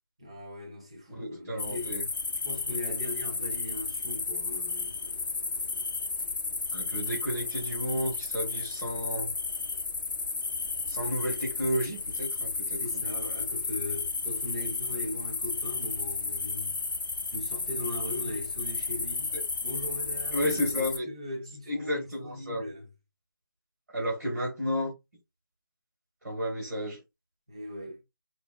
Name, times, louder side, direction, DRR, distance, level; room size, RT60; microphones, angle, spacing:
voice 1, 0.2-2.0 2.4-5.0 12.7-16.8 17.3-19.3 19.6-22.9 27.5-28.0, left 1 dB, 15° right, 0.5 m, -39 dB
voice 2, 1.1-2.0 6.7-9.3 10.9-13.0 20.3-21.1 21.7-22.6 23.9-24.9 26.2-27.0, equal, 60° right, 1.7 m, -32 dB
sound 1, 1.6-21.0, left 4 dB, 65° left, 0.5 m, -33 dB
4.4 x 2.0 x 2.3 m
figure-of-eight pair, 175°, 12 cm